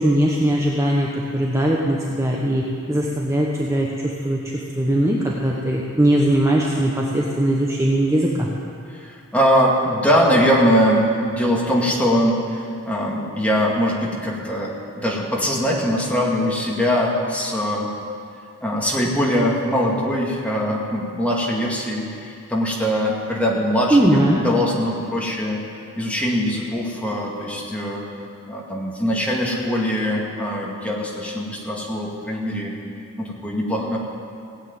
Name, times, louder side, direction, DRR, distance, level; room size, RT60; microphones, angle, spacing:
voice 1, 0.0-8.5 23.9-24.4, right 1 dB, 15° right, -3 dB, 1.1 m, -20 dB
voice 2, 9.0-17.9 18.6-25.6 26.0-28.1 28.5-32.7 33.2-34.0, equal, 5° left, -3 dB, 2.3 m, -22 dB
17.5 x 8.3 x 9.4 m, 2.5 s
head